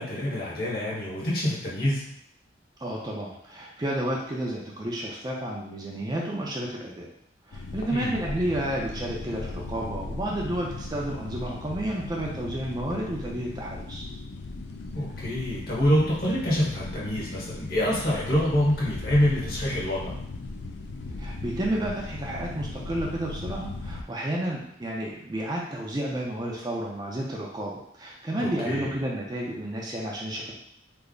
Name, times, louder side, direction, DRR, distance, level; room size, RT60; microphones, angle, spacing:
voice 1, 0.0-2.0 7.9-8.2 14.9-20.2 28.4-28.9, equal, 50° left, -5 dB, 1.1 m, -26 dB
voice 2, 2.8-7.1 7.5-14.1 21.2-30.5, right 1 dB, 20° right, -2 dB, 0.4 m, -31 dB
sound 1, 7.5-24.0, left 3 dB, 70° left, 0.4 m, -37 dB
3.3 x 2.0 x 3.7 m, 0.73 s
head